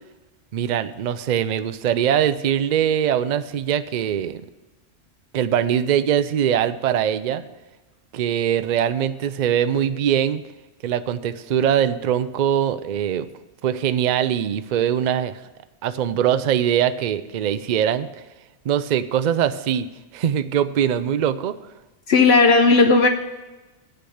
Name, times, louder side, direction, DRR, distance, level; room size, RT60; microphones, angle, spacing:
voice 1, 0.5-4.4 5.3-7.4 8.1-10.4 10.8-13.3 13.6-15.4 15.8-18.1 18.6-19.9 20.1-21.6, right 9 dB, 55° right, 12 dB, 0.5 m, -22 dB
voice 2, 22.1-23.1, left 3 dB, 65° left, 4 dB, 1.0 m, -14 dB
8.2 x 6.7 x 7.7 m, 1.1 s
omnidirectional pair, 1.2 m